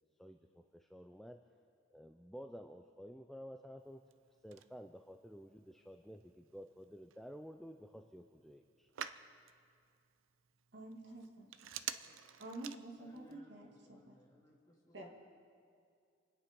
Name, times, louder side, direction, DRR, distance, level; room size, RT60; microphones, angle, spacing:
voice 1, 0.2-1.4 1.9-4.0 4.4-8.9, equal, ahead, 5 dB, 0.4 m, -52 dB
Telephone, 3.8-13.4, right 10 dB, 85° right, 0.6 m, -52 dB
voice 2, 10.7-11.7 12.4-14.2 14.9-15.1, right 2 dB, 60° right, 0 dB, 2.3 m, -49 dB
voice 3, 13.0-15.1, left 1 dB, 20° left, -3 dB, 2.4 m, -63 dB
27.5 x 10.0 x 5.2 m, 2.4 s
head